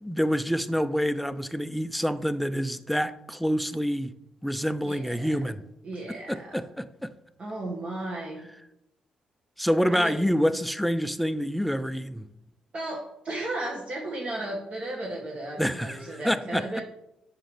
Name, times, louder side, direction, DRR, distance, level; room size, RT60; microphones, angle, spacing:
voice 1, 0.0-4.1 4.4-5.6 6.3-7.1 9.6-12.2 15.6-16.8, equal, ahead, 13 dB, 0.5 m, -27 dB
voice 2, 4.8-5.4 5.8-6.6 7.4-8.5 9.9-10.2 12.7-16.8, right 2 dB, 45° right, -2 dB, 1.7 m, -35 dB
7.6 x 5.7 x 3.3 m, 0.85 s
supercardioid pair, 60°, 3 cm